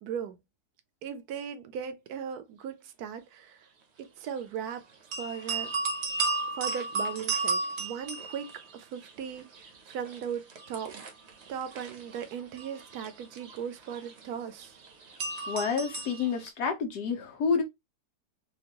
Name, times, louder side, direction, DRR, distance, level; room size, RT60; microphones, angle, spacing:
voice 1, 0.0-0.4 1.0-3.7 4.0-4.9 5.2-5.7 6.5-11.0 11.5-14.8, right 8 dB, 75° right, 1.1 m, -38 dB
sound 1, 5.1-9.1 9.4-16.5, right 3 dB, 50° right, 0.9 m, -34 dB
voice 2, 15.5-17.6, left 5 dB, 75° left, 1.4 m, -29 dB
4.3 x 2.4 x 2.9 m
omnidirectional pair, 1.7 m